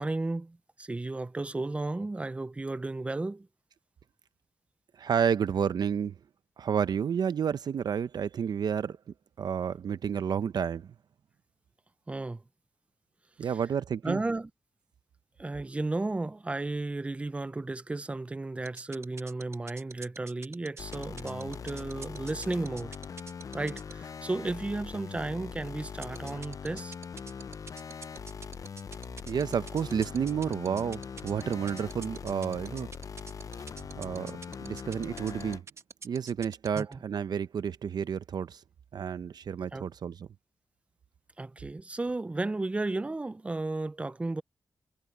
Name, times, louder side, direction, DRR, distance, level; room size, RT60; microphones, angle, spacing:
voice 1, 0.0-3.5 12.1-12.4 14.0-14.5 15.4-22.9 23.5-26.9 36.7-37.0 39.7-39.9 41.4-44.4, right 2 dB, 15° right, 0.4 m, -34 dB
voice 2, 5.0-6.1 6.6-9.0 9.4-10.9 13.4-14.2 29.3-32.9 34.0-35.6 36.0-38.6 38.9-40.3, right 7 dB, 70° right, 0.6 m, -30 dB
sound 1, 18.7-23.9 26.0-36.9, right 4 dB, 40° right, 1.0 m, -45 dB
sound 2, 20.8-35.6, left 6 dB, 50° left, 0.5 m, -42 dB
wide cardioid pair, 135°, 7 cm